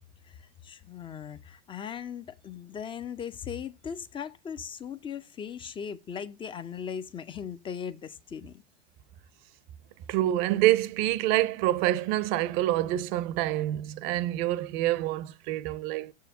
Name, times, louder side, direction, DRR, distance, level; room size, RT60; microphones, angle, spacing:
voice 1, 0.2-8.6, left 7 dB, 15° left, 0.5 m, -38 dB
voice 2, 10.1-16.1, right 14 dB, 40° right, 0.6 m, -26 dB
6.8 x 3.7 x 6.0 m
figure-of-eight pair, 90°, 33 cm